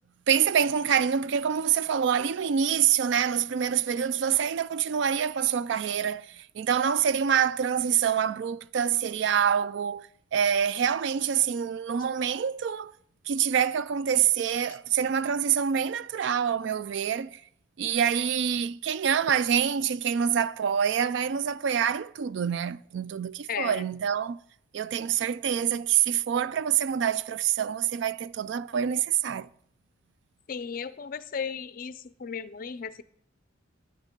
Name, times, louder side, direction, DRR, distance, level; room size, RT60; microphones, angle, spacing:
voice 1, 0.3-12.9 13.3-17.4 17.8-24.4 24.7-29.5, right 8 dB, 60° right, 0.3 m, -26 dB
voice 2, 23.5-23.9 30.5-33.0, left 6 dB, 45° left, 0.5 m, -35 dB
10.5 x 7.3 x 5.3 m
head